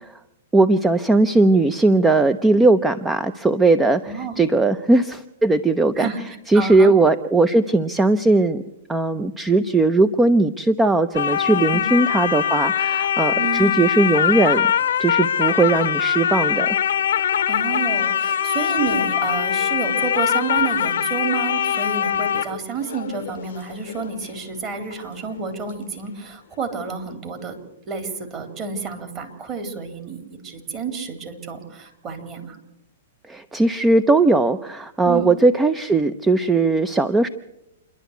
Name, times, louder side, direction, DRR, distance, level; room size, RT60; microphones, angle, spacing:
voice 1, 0.5-6.1 6.5-8.6 8.9-14.7 15.0-16.8 33.3-37.3, right 2 dB, 10° right, 13 dB, 0.6 m, -18 dB
voice 2, 4.1-4.5 5.9-6.9 11.7-11.9 13.3-13.7 17.5-27.6 27.9-32.6 35.0-35.3, right 5 dB, 30° right, 5 dB, 3.7 m, -30 dB
sound 1, 11.1-25.0 25.3-25.4, left 9 dB, 75° left, 0.8 m, -22 dB
28.0 x 11.5 x 8.2 m, 0.88 s
hypercardioid pair, 130°, 0 cm